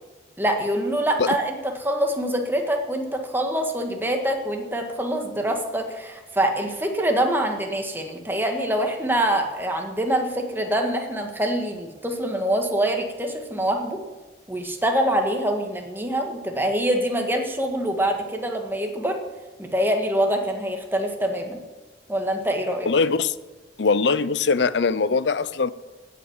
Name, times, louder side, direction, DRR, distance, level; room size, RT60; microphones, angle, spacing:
voice 1, 0.4-14.0 14.5-19.2 19.6-21.6 22.1-22.9, right 1 dB, 10° right, 1.7 m, -25 dB
voice 2, 22.9-23.3 23.8-25.7, left 4 dB, 70° left, 0.6 m, -21 dB
17.5 x 7.4 x 7.3 m
head